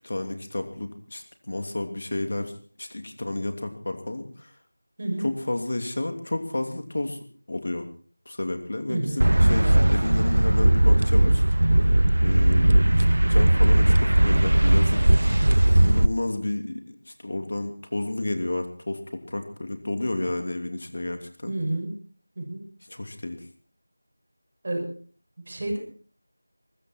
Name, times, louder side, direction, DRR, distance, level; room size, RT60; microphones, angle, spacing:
voice 1, 0.0-4.5 5.2-7.2 7.5-7.9 8.2-11.4 12.2-15.0 15.8-21.5 22.9-23.5, left 2 dB, 45° left, 6 dB, 2.9 m, -31 dB
voice 2, 8.9-9.8 21.5-21.9 22.4-22.7 24.6-24.9 25.4-25.8, right 1 dB, 35° right, 2 dB, 6.1 m, -30 dB
sound 1, 9.2-16.1, right 1 dB, 60° right, 0.9 m, -18 dB
22.5 x 14.0 x 4.5 m, 0.43 s
figure-of-eight pair, 170°, 0 cm